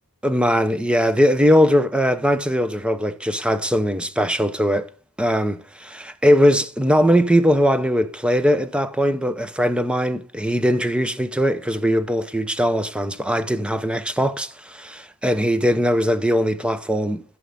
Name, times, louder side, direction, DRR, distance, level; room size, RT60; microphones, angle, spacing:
voice 1, 0.2-4.9 5.2-17.2, equal, 5° right, 0.6 m, -20 dB
15.5 x 6.2 x 3.5 m
head